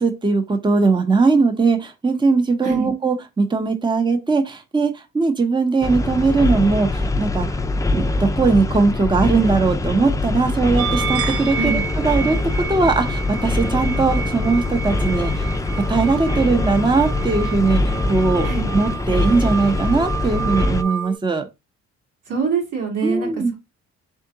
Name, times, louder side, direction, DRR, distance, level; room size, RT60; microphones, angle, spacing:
voice 1, 0.0-7.6 7.9-11.7 12.0-12.4 12.7-15.5 15.7-17.8 18.1-21.5 23.0-23.5, right 4 dB, 15° right, 0.7 m, -19 dB
sound 1, 5.8-20.8, left 2 dB, 10° left, 0.4 m, -23 dB
sound 2, 10.8-21.2, right 7 dB, 55° right, 0.9 m, -30 dB
voice 2, 22.3-23.6, right 4 dB, 85° right, 2.1 m, -24 dB
3.6 x 3.5 x 2.7 m
cardioid pair, 90°, 30 cm